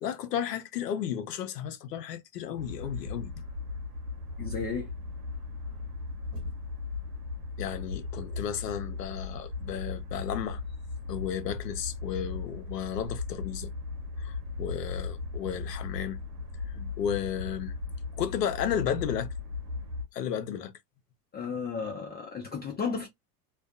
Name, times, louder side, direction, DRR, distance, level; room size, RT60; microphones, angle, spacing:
voice 1, 0.0-3.3 7.6-10.6 11.1-13.7 14.2-16.2 16.7-17.7 18.2-19.3 20.1-20.7, left 9 dB, 90° left, 0.6 m, -33 dB
sound 1, 2.6-20.0, left 4 dB, 85° right, 1.2 m, -37 dB
voice 2, 4.4-4.9 21.3-23.1, left 5 dB, 20° left, 0.6 m, -33 dB
2.5 x 2.2 x 2.3 m
hypercardioid pair, 85°, 47 cm